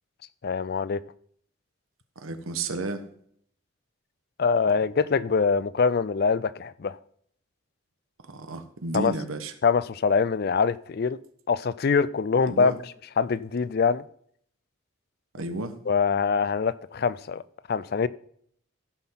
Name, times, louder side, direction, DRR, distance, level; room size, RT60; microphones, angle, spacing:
voice 1, 0.4-1.0 4.4-7.0 8.9-9.1 9.6-11.2 11.5-12.7 13.2-14.0 15.9-17.4 17.7-18.1, left 5 dB, 50° left, 0.4 m, -24 dB
voice 2, 2.2-3.0 8.2-9.5 12.5-12.8 15.3-15.7, right 2 dB, 85° right, 1.2 m, -32 dB
14.5 x 6.0 x 5.8 m
head